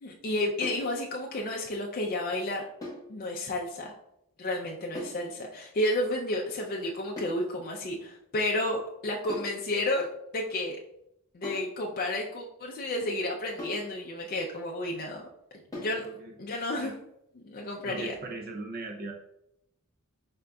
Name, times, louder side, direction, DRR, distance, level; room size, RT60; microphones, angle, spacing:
voice 1, 0.0-2.6 3.1-3.9 4.4-10.1 10.3-10.8 11.3-15.2 15.7-16.1 16.4-16.9 17.4-18.1, left 1 dB, 40° left, -1 dB, 0.4 m, -31 dB
sound 1, 0.6-0.9 2.8-3.1 5.0-5.3 7.2-7.5 9.3-9.6 11.4-11.8 13.6-13.9 15.7-16.0, left 1 dB, 15° left, 1.0 m, -39 dB
voice 2, 15.7-16.3 16.8-17.0 17.8-19.1, right 2 dB, 45° right, 3 dB, 0.4 m, -40 dB
4.9 x 3.6 x 2.2 m, 0.80 s
head